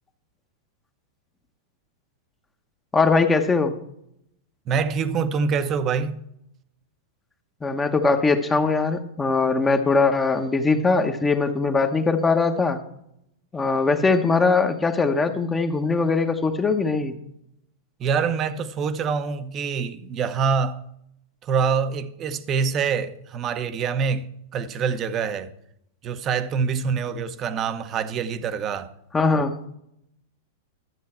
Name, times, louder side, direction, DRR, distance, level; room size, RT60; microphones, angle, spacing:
voice 1, 2.9-3.7 7.6-12.8 13.5-17.1 29.1-29.6, left 4 dB, 15° left, 1.0 m, -21 dB
voice 2, 4.7-6.3 18.0-20.8 21.4-25.5 26.0-28.9, right 6 dB, 35° right, 0.8 m, -25 dB
12.0 x 7.4 x 4.3 m
hypercardioid pair, 115°, 0 cm